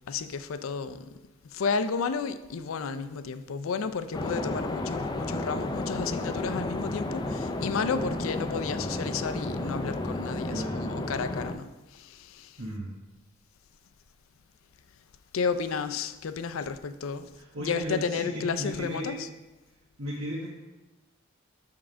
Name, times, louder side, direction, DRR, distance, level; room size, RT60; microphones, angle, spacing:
voice 1, 0.1-1.1 1.5-12.6 15.3-17.3 17.6-19.3, left 5 dB, 85° left, 0.4 m, -32 dB
sound 1, 4.1-11.5, left 2 dB, 20° left, 0.4 m, -32 dB
voice 2, 10.5-10.9 12.6-12.9 17.4-19.2 20.0-20.5, equal, 85° right, 1.3 m, -35 dB
7.1 x 3.7 x 6.0 m
head